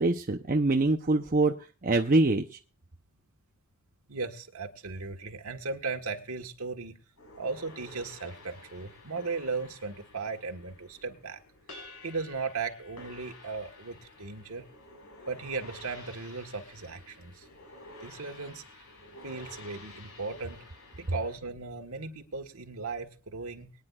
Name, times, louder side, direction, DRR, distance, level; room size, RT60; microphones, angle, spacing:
voice 1, 0.0-1.5 1.8-2.4, right 2 dB, 40° right, 4 dB, 0.8 m, -24 dB
voice 2, 4.1-7.0 7.4-11.4 12.0-14.7 15.3-17.5 18.0-18.6 19.2-20.6 21.0-23.7, right 4 dB, 90° right, 4 dB, 1.5 m, -37 dB
sound 1, 7.2-21.4, left 2 dB, 80° left, 5.4 m, -51 dB
23.0 x 9.8 x 2.4 m, 0.35 s
head